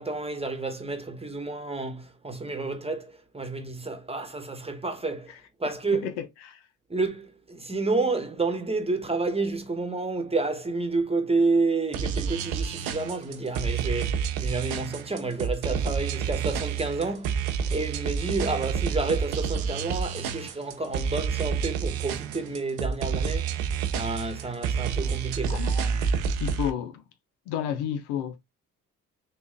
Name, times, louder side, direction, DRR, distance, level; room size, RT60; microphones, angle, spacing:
voice 1, 0.0-6.1 6.9-25.7, right 3 dB, 15° right, 1.1 m, -30 dB
voice 2, 5.9-6.6 25.5-26.0 26.4-27.0 27.5-28.4, left 9 dB, 80° left, 0.7 m, -32 dB
sound 1, 11.9-26.7, right 6 dB, 80° right, 0.6 m, -29 dB
3.5 x 2.4 x 3.3 m
hypercardioid pair, 45°, 39 cm